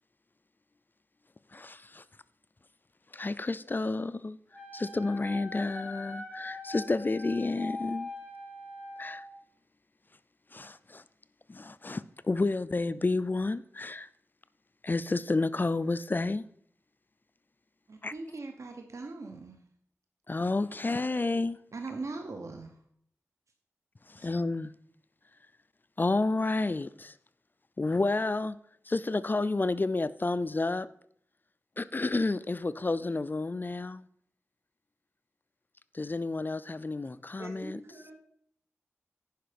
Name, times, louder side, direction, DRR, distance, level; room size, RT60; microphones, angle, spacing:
voice 1, 1.5-2.0 3.1-4.4 4.7-8.1 9.0-9.2 10.5-11.0 11.5-14.1 14.8-16.4 18.0-18.1 20.3-21.6 24.1-24.7 26.0-27.1 27.8-28.6 28.9-30.9 31.8-34.1 35.9-37.8, left 3 dB, 40° left, 0.4 m, -30 dB
Wind instrument woodwind instrument, 4.5-9.3, left 2 dB, 10° right, 3.3 m, -42 dB
voice 2, 17.9-19.6 21.7-22.7, right 3 dB, 75° right, 0.9 m, -40 dB
voice 3, 37.4-38.1, right 2 dB, 55° right, 2.6 m, -44 dB
10.0 x 5.6 x 5.1 m
cardioid pair, 50°, 5 cm